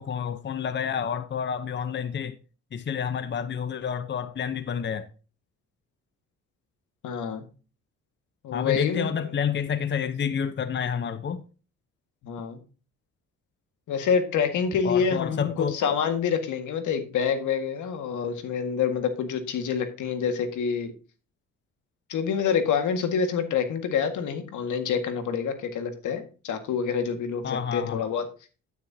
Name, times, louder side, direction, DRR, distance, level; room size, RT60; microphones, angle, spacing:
voice 1, 0.0-2.4 2.7-5.1 8.5-11.4 14.8-15.8 27.4-28.0, left 7 dB, 40° left, 0.8 m, -29 dB
voice 2, 7.0-7.4 8.4-9.1 12.2-12.6 13.9-20.9 22.1-28.3, left 6 dB, 80° left, 1.8 m, -27 dB
9.6 x 9.4 x 2.8 m
cardioid pair, 90°, 30 cm